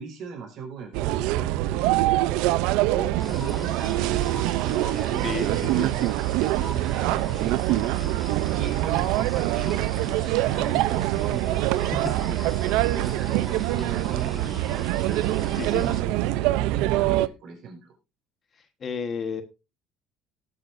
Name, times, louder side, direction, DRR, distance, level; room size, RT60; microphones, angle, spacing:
voice 1, 0.0-1.9 2.7-6.2 6.7-8.0 8.4-12.1 12.9-17.9, right 6 dB, 50° right, 2 dB, 5.1 m, -37 dB
sound 1, 0.9-17.3, right 16 dB, 80° right, 0.5 m, -24 dB
sound 2, 3.2-16.0, left 1 dB, 10° left, 1.4 m, -42 dB
voice 2, 5.2-5.9 12.4-12.7 15.5-15.9 18.8-19.4, left 5 dB, 30° left, 9 dB, 1.2 m, -32 dB
18.5 x 8.4 x 2.6 m, 0.27 s
cardioid pair, 150°, 0 cm